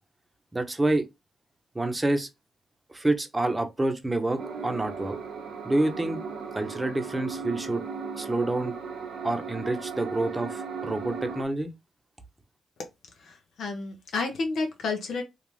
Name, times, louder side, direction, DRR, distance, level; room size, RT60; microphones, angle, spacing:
voice 1, 0.5-1.0 1.7-2.3 2.9-5.2 5.6-6.2 6.5-7.8 8.1-8.7 9.2-11.7, right 2 dB, 20° right, 0.8 m, -27 dB
sound 1, 4.4-11.4, right 5 dB, 75° right, 0.6 m, -36 dB
voice 2, 13.2-15.2, left 3 dB, 75° left, 1.0 m, -31 dB
2.9 x 2.4 x 3.2 m
supercardioid pair, 60°, 0 cm